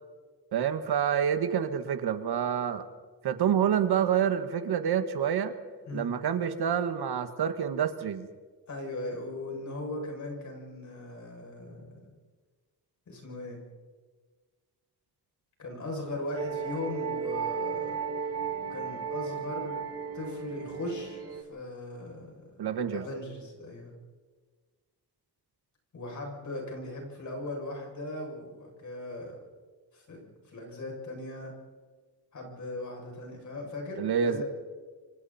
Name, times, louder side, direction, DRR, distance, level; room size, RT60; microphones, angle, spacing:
voice 1, 0.5-2.9 3.2-5.5 5.9-8.3 22.6-23.1 34.0-34.4, right 8 dB, 75° right, 9 dB, 1.8 m, -27 dB
voice 2, 8.7-12.0 13.1-13.6 15.6-18.0 18.7-19.8 20.1-22.5 22.9-23.9 25.9-29.4 29.9-31.5 32.3-34.4, left 2 dB, 50° left, 0 dB, 7.5 m, -38 dB
sound 1, 16.4-21.4, right 6 dB, 40° right, 2.3 m, -34 dB
29.0 x 25.0 x 4.4 m, 1.5 s
wide cardioid pair, 170°, 39 cm